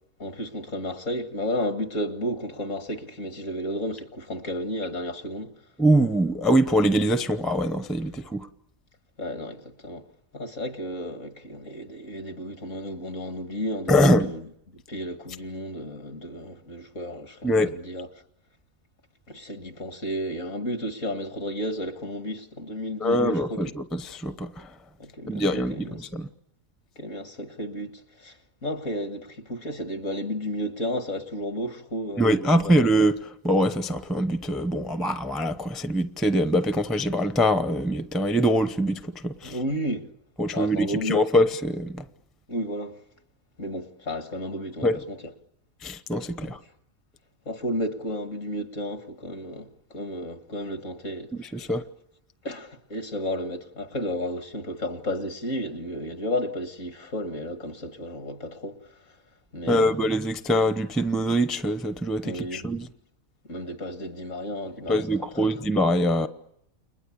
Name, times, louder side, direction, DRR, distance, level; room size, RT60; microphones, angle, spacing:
voice 1, 0.2-5.5 9.2-10.0 10.3-14.5 14.7-18.1 19.3-23.6 25.0-26.1 27.0-32.7 39.4-40.1 40.5-41.2 42.5-43.0 43.6-45.2 46.4-46.5 47.5-51.3 51.6-51.7 52.4-58.8 59.5-60.1 62.2-62.7 63.4-65.5, equal, 60° left, 2.2 m, -33 dB
voice 2, 5.8-8.5 13.9-14.3 17.4-17.7 23.0-24.5 25.3-25.9 26.1-26.3 32.2-33.1 33.4-39.5 40.4-42.0 44.8-45.0 45.8-46.6 51.4-51.8 59.7-62.9 64.9-66.3, equal, ahead, 0.6 m, -23 dB
29.5 x 21.5 x 8.6 m
omnidirectional pair, 1.5 m